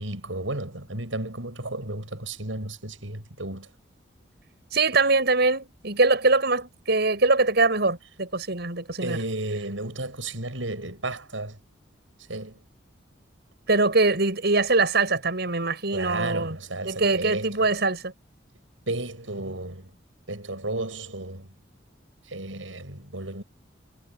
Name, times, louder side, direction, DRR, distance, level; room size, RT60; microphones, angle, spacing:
voice 1, 0.0-3.7 9.0-11.6 12.3-12.6 15.9-17.7 18.9-19.9 20.3-21.5 22.3-23.4, right 2 dB, 90° right, 7.7 m, -33 dB
voice 2, 4.7-9.2 13.7-16.6 16.8-18.1, right 3 dB, 60° right, 7.8 m, -23 dB
head